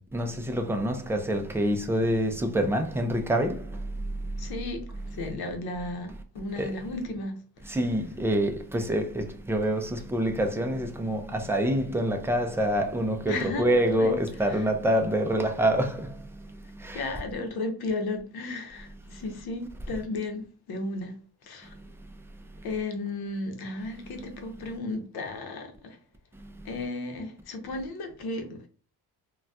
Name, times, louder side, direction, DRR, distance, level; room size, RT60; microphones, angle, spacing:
voice 1, 0.0-4.5 6.6-6.7 7.6-17.1 19.1-19.2 21.7-21.9 24.0-24.3 26.3-26.7, right 1 dB, 5° right, 0.3 m, -27 dB
voice 2, 4.4-4.8 5.1-7.4 7.7-7.8 13.3-14.1 14.5-14.6 16.9-21.2 21.4-21.7 22.6-26.0 26.6-28.6, left 2 dB, 65° left, 0.8 m, -34 dB
3.9 x 2.2 x 2.2 m
cardioid pair, 125°, 40 cm